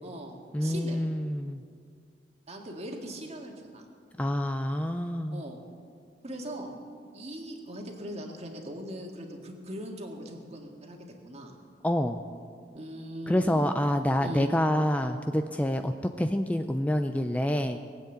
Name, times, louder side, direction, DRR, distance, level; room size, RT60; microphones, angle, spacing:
voice 1, 0.0-1.0 2.5-3.9 5.3-5.6 6.2-6.7 7.1-11.0 11.2-11.6 12.7-13.7 14.2-14.5, equal, 40° right, 2 dB, 2.0 m, -40 dB
voice 2, 0.5-1.6 4.2-5.4 11.8-12.2 13.3-17.8, left 1 dB, 10° left, 7 dB, 0.4 m, -27 dB
20.0 x 8.3 x 8.0 m, 2.2 s
head